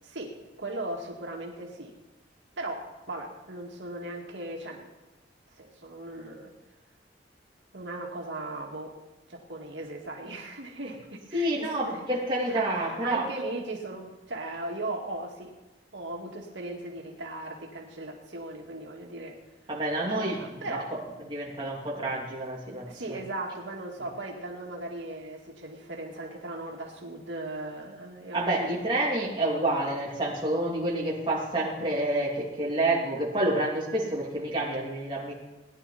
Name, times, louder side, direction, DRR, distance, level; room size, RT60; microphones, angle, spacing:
voice 1, 0.0-1.9 2.6-4.9 5.6-6.5 7.7-9.0 9.3-12.1 12.5-15.5 15.9-19.4 20.0-20.9 22.9-28.7, right 2 dB, 85° right, -1 dB, 2.1 m, -38 dB
voice 2, 11.3-13.3 19.7-20.4 20.7-20.8 21.2-23.2 28.3-35.3, right 1 dB, 25° right, -5 dB, 2.9 m, -28 dB
18.5 x 10.5 x 4.2 m, 1.1 s
head